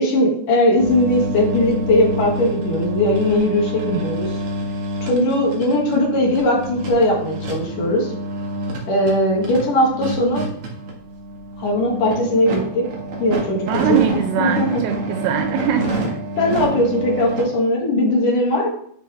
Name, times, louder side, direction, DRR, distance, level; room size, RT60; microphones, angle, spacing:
voice 1, 0.0-4.3 5.0-8.1 8.9-10.5 11.6-12.8 13.2-13.6 13.9-14.0 14.4-14.8 16.4-18.7, left 1 dB, 50° left, -2 dB, 3.4 m, -19 dB
sound 1, 0.8-17.4, right 1 dB, 60° right, 1.5 m, -27 dB
voice 2, 13.7-15.9, right 9 dB, 80° right, 5 dB, 2.9 m, -22 dB
11.0 x 6.6 x 3.5 m, 0.65 s
omnidirectional pair, 5.3 m